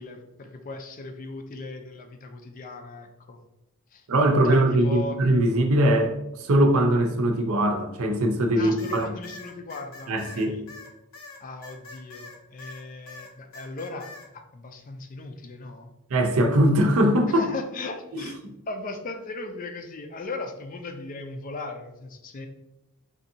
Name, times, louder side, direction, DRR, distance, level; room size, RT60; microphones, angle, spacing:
voice 1, 0.0-3.4 3.9-4.1 4.4-5.2 8.6-10.6 11.4-14.1 14.3-15.9 17.3-22.5, left 2 dB, 35° left, 6 dB, 0.4 m, -37 dB
voice 2, 4.1-9.1 10.1-10.5 16.1-17.4 18.1-18.3, right 1 dB, 65° right, 4 dB, 0.6 m, -21 dB
sound 1, 8.8-12.8 13.1-14.3, left 3 dB, 65° left, 0.8 m, -44 dB
4.9 x 2.7 x 2.7 m, 0.92 s
head